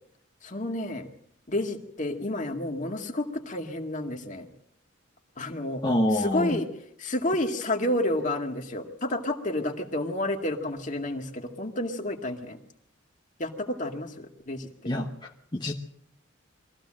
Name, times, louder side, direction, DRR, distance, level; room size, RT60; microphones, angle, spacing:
voice 1, 0.4-1.1 1.5-4.5 5.4-5.8 6.1-6.7 7.0-12.6 13.4-14.9, left 1 dB, 40° left, 3 dB, 2.1 m, -30 dB
voice 2, 5.8-6.6 14.9-15.7, left 1 dB, 20° left, 0 dB, 1.1 m, -27 dB
23.0 x 15.0 x 7.7 m, 0.74 s
head